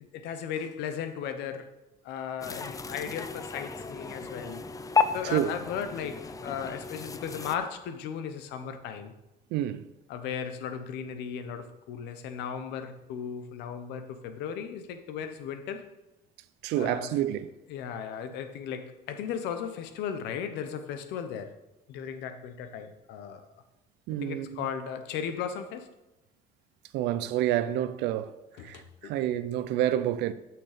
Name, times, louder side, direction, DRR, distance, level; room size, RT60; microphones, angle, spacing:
voice 1, 0.0-1.7 2.0-4.6 5.1-9.1 10.1-15.9 16.8-17.2 17.7-21.5 21.9-23.5 24.2-25.9 28.6-29.3, left 7 dB, 90° left, 0.9 m, -36 dB
sound 1, 2.4-7.6, left 5 dB, 20° left, 0.5 m, -33 dB
voice 2, 9.5-9.9 16.6-17.5 24.1-24.7 26.9-28.4 28.6-30.3, right 12 dB, 90° right, 0.6 m, -28 dB
6.8 x 6.1 x 6.6 m
cardioid pair, 110°, 17 cm